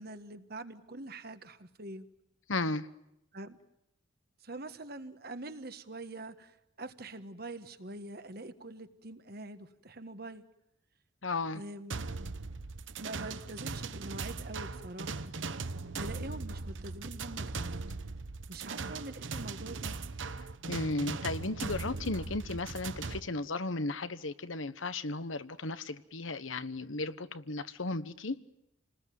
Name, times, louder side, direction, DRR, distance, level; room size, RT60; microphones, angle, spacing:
voice 1, 0.0-2.1 3.3-3.6 4.4-6.5 6.8-10.4 11.5-12.1 13.0-15.3 15.9-17.9 18.5-20.0, right 2 dB, 50° right, 10 dB, 1.6 m, -44 dB
voice 2, 2.5-2.9 11.2-11.6 20.7-28.4, left 2 dB, 90° left, 12 dB, 1.3 m, -35 dB
sound 1, 11.9-23.2, right 4 dB, 75° right, 1.1 m, -39 dB
29.0 x 20.0 x 9.4 m, 0.83 s
head